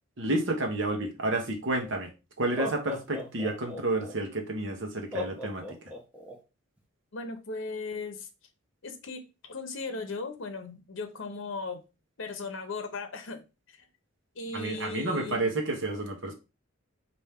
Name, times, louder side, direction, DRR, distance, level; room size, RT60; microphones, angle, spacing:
voice 1, 0.2-2.1 2.4-5.6 14.5-16.3, right 2 dB, 65° right, 1.0 m, -30 dB
Laughter, 1.7-1.8 2.4-4.1 5.1-6.3, left 2 dB, 5° right, 0.9 m, -36 dB
voice 2, 7.1-8.3 8.8-11.8 12.2-13.4 14.4-15.5, left 3 dB, 65° left, 0.7 m, -37 dB
4.3 x 2.7 x 3.5 m
head